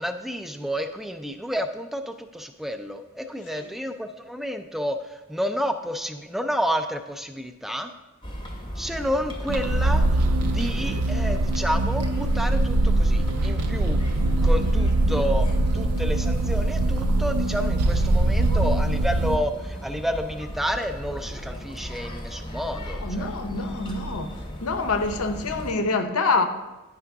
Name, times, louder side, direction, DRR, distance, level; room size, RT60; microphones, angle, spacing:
voice 1, 0.0-7.9 8.8-14.0 14.4-15.5 15.7-23.3, equal, ahead, 0.3 m, -30 dB
sound 1, 8.2-25.7, equal, 20° left, 0.8 m, -37 dB
sound 2, 9.5-19.4, right 2 dB, 85° right, 0.5 m, -22 dB
voice 2, 22.7-24.4 24.6-26.4, left 3 dB, 70° left, 0.7 m, -26 dB
9.9 x 4.7 x 3.5 m
head